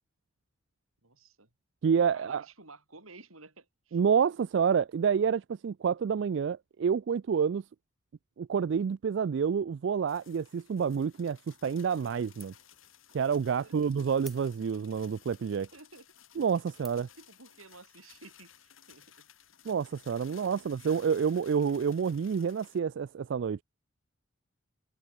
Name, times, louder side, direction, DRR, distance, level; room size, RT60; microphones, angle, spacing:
voice 1, 1.0-1.5 2.1-4.3 13.6-14.1 15.7-16.1 17.2-19.3 20.3-21.0, right 3 dB, 90° right, 5.6 m, -53 dB
voice 2, 1.8-2.4 3.9-7.6 8.4-12.5 13.1-15.7 16.4-17.1 19.7-23.6, right 6 dB, 60° right, 0.3 m, -28 dB
sound 1, 10.1-22.8, left 10 dB, 75° left, 6.8 m, -58 dB
sound 2, 11.8-12.1 12.4-12.8 13.2-13.3 14.2-14.9 15.5-15.6 16.2-16.4 16.8-17.2, equal, ahead, 1.2 m, -52 dB
head